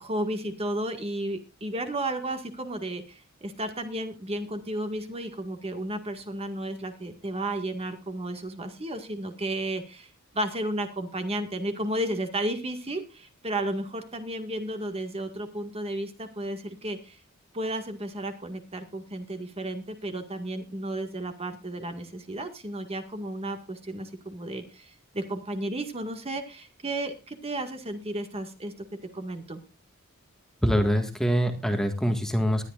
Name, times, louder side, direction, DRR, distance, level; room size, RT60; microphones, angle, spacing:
voice 1, 0.0-17.2 17.5-28.7 29.1-29.6, right 1 dB, 30° right, 6 dB, 1.9 m, -33 dB
voice 2, 30.6-32.7, equal, ahead, 5 dB, 1.7 m, -24 dB
20.0 x 11.5 x 2.5 m, 0.29 s
head